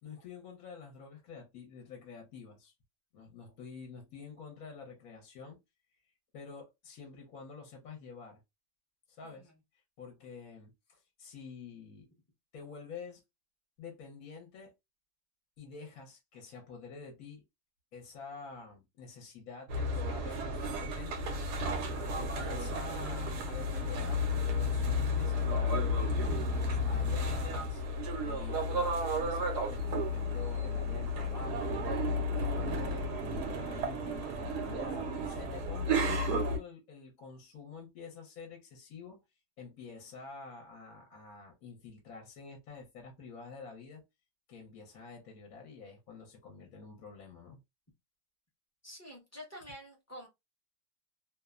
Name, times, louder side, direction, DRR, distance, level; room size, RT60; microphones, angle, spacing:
voice 1, 0.0-2.7 3.1-5.6 6.3-8.4 9.1-9.5 10.0-12.1 12.5-13.2 13.8-14.7 15.6-17.4 17.9-21.8 22.2-25.9 26.3-27.8 28.2-39.2 39.6-44.0 44.5-47.6, left 4 dB, 65° left, 1.2 m, -48 dB
sound 1, 19.7-36.6, left 1 dB, 85° right, 1.3 m, -32 dB
voice 2, 48.8-50.3, equal, 15° left, 0.6 m, -48 dB
3.0 x 2.0 x 2.3 m
omnidirectional pair, 1.7 m